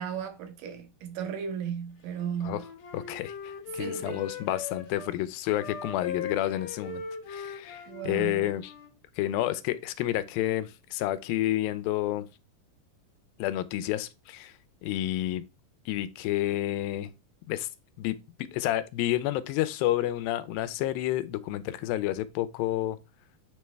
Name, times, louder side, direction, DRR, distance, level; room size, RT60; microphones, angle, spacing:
voice 1, 0.0-2.6 3.7-4.2 7.9-8.5, right 8 dB, 75° right, 2.5 m, -35 dB
Wind instrument woodwind instrument, 2.1-5.1 5.5-8.9, left 6 dB, 60° left, 1.3 m, -40 dB
voice 2, 2.9-7.0 7.3-8.7 9.2-12.3 13.4-14.5 14.8-15.4 15.9-17.1 17.5-17.7 18.0-23.0, left 14 dB, 85° left, 2.3 m, -30 dB
9.0 x 3.4 x 3.2 m
omnidirectional pair, 4.1 m